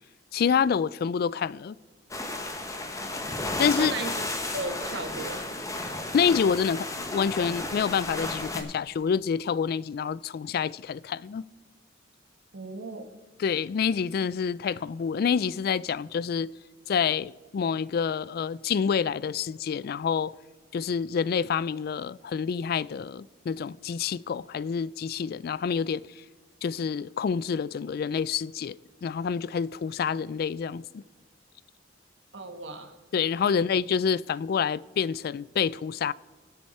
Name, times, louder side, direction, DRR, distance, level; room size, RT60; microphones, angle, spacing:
voice 1, 0.3-1.8 3.6-3.9 6.1-11.5 13.4-16.5 16.9-20.3 20.7-26.0 26.6-31.0 33.1-36.1, left 6 dB, 55° left, 0.3 m, -27 dB
sound 1, 2.1-8.6, left 2 dB, 15° left, 1.3 m, -33 dB
voice 2, 3.7-4.2 4.5-5.5 12.5-13.1 32.3-32.9 33.5-33.7, right 2 dB, 70° right, 1.4 m, -36 dB
22.5 x 7.8 x 4.3 m
head